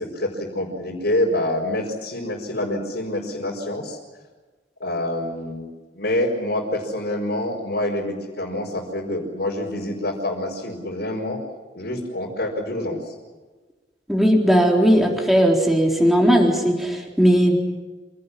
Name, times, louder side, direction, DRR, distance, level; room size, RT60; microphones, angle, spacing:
voice 1, 0.0-4.0 4.8-11.4 11.8-13.1, left 1 dB, 60° left, -4 dB, 5.2 m, -26 dB
voice 2, 14.1-17.6, equal, ahead, 0 dB, 3.9 m, -17 dB
28.0 x 17.5 x 10.0 m, 1.3 s
head